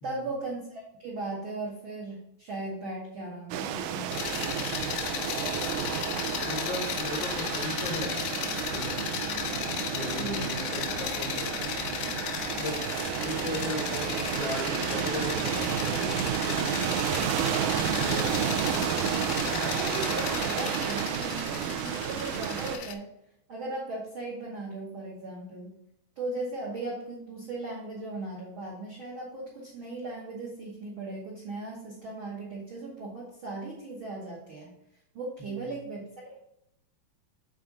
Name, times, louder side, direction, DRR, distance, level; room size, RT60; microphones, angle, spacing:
voice 1, 0.0-5.0 10.1-10.5 19.4-23.1 23.5-25.7 26.2-34.7 35.1-36.4, right 2 dB, 75° right, -4 dB, 1.1 m, -38 dB
sound 1, 3.5-22.8, right 9 dB, 90° right, 1.8 m, -31 dB
sound 2, 4.1-23.0, left 9 dB, 85° left, 1.8 m, -35 dB
voice 2, 6.4-8.2 8.7-9.1 9.9-11.5 12.6-12.8 13.2-16.9 17.9-18.3 35.4-35.8, left 1 dB, 70° left, -2 dB, 1.1 m, -37 dB
7.8 x 3.6 x 3.8 m, 0.79 s
omnidirectional pair, 4.2 m